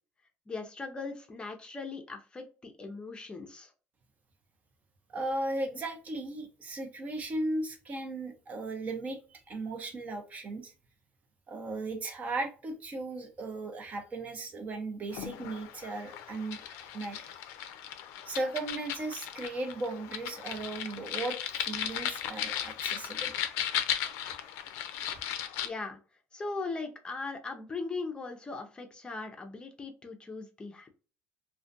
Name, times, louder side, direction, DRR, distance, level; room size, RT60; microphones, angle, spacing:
voice 1, 0.5-3.7 25.6-26.0 26.3-31.0, left 3 dB, 20° left, 5 dB, 0.5 m, -39 dB
voice 2, 5.1-10.7 11.5-17.3 18.3-23.3, right 2 dB, 35° right, 5 dB, 0.7 m, -36 dB
sound 1, 15.1-25.7, left 10 dB, 75° left, 0.4 m, -36 dB
2.4 x 2.2 x 2.5 m, 0.36 s
supercardioid pair, 105°, 4 cm